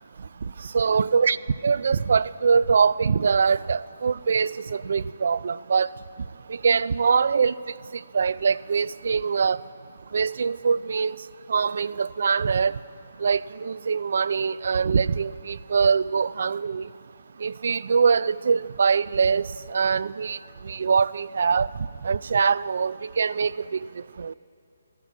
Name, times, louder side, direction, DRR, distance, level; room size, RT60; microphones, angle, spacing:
voice 1, 0.6-1.4 1.6-5.9 6.5-7.5 7.9-9.6 10.1-11.1 11.5-12.8 13.2-16.9 17.4-20.4 20.6-21.7 22.0-24.3, right 5 dB, 65° right, 18 dB, 0.4 m, -23 dB
14.5 x 11.5 x 8.2 m, 2.4 s
hypercardioid pair, 155°, 0 cm